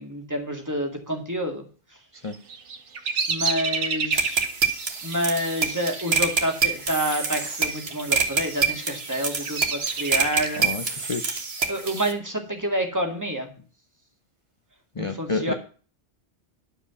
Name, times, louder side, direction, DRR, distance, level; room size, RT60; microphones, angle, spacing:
voice 1, 0.0-1.6 3.3-4.4 5.0-11.2 11.6-13.5 15.0-15.5, equal, 15° right, 2 dB, 2.0 m, -28 dB
Bird vocalization bird call bird song, 2.3-7.3 7.6-8.2 8.8-10.7, right 5 dB, 85° right, 1.4 m, -31 dB
sound 1, 4.1-12.1, right 5 dB, 60° right, 1.7 m, -26 dB
voice 2, 10.6-11.4 15.0-15.5, left 4 dB, 35° left, 8 dB, 0.6 m, -30 dB
11.5 x 5.0 x 6.9 m, 0.39 s
omnidirectional pair, 1.2 m